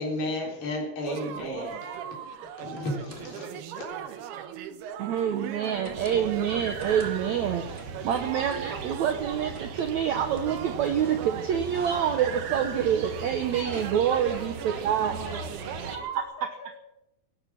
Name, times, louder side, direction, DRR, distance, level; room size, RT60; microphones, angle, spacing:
voice 1, 0.0-1.9 2.6-3.9, left 1 dB, 35° left, -3 dB, 4.4 m, -33 dB
sound 1, 1.1-16.2, right 8 dB, 90° right, 3.1 m, -39 dB
sound 2, 1.4-1.8 2.4-3.4 3.8-4.1 5.7-6.3 6.7-7.4 7.7-8.9 9.3-12.6 13.4-13.8, right 2 dB, 25° right, 1.5 m, -47 dB
voice 2, 5.0-7.7 8.0-15.1 15.9-16.0, right 9 dB, 70° right, 7 dB, 1.8 m, -27 dB
sound 3, 5.9-16.0, right 5 dB, 55° right, 2.1 m, -38 dB
voice 3, 14.3-16.8, left 2 dB, 70° left, -2 dB, 5.8 m, -47 dB
18.0 x 11.0 x 7.2 m, 0.88 s
omnidirectional pair, 4.4 m